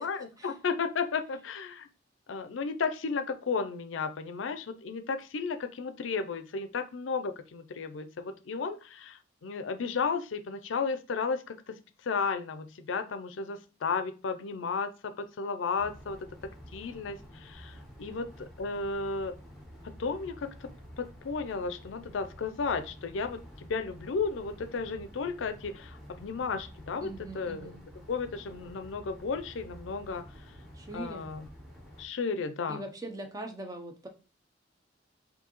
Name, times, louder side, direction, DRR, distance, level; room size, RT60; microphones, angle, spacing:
voice 1, 0.0-1.9 2.3-16.3 16.7-19.3 19.8-20.7 21.0-27.7 28.1-30.3 30.9-31.5 32.0-32.8, left 5 dB, 85° left, 11 dB, 0.5 m, -34 dB
sound 1, 15.8-32.0, equal, ahead, 0.9 m, -50 dB
voice 2, 27.0-27.8 30.7-31.3 32.7-34.1, right 2 dB, 20° right, 4 dB, 0.6 m, -41 dB
4.6 x 2.7 x 3.0 m, 0.33 s
head